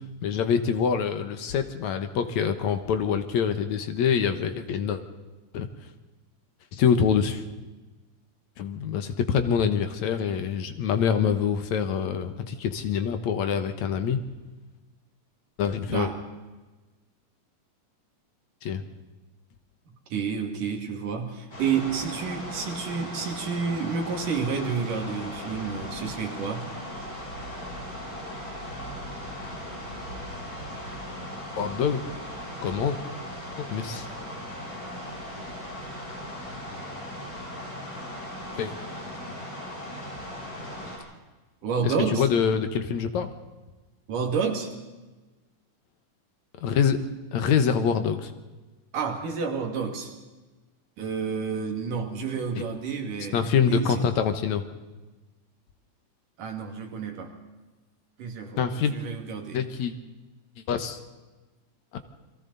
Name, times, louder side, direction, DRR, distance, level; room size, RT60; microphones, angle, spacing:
voice 1, 0.2-5.0 5.5-5.7 6.7-7.4 8.6-14.2 15.6-16.1 18.6-18.8 31.6-32.0 32.6-33.0 33.6-34.1 38.6-38.7 41.8-43.3 46.6-47.0 47.3-48.3 53.3-54.6 58.6-58.9 59.5-59.9 60.7-61.0, left 7 dB, 70° left, 8 dB, 2.4 m, -25 dB
voice 2, 15.9-16.2 20.1-26.7 41.6-42.3 44.1-44.7 48.9-50.1 51.0-54.0 56.4-57.3 58.2-58.6 58.9-59.6, right 6 dB, 85° right, 4 dB, 4.0 m, -30 dB
sound 1, 21.5-41.0, equal, 35° left, 8.3 m, -38 dB
29.5 x 23.0 x 4.1 m, 1.2 s
omnidirectional pair, 3.6 m